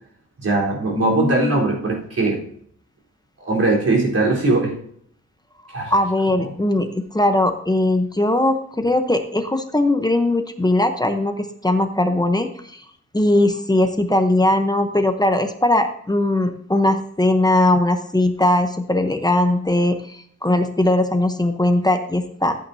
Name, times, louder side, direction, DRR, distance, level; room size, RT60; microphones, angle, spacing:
voice 1, 0.4-2.4 3.4-4.8 5.7-5.9, right 2 dB, 50° right, -3 dB, 3.9 m, -20 dB
voice 2, 0.9-1.6 5.6-12.8 13.1-22.6, left 1 dB, 15° left, 6 dB, 0.8 m, -20 dB
14.0 x 8.8 x 2.7 m, 0.64 s
wide cardioid pair, 155°, 30 cm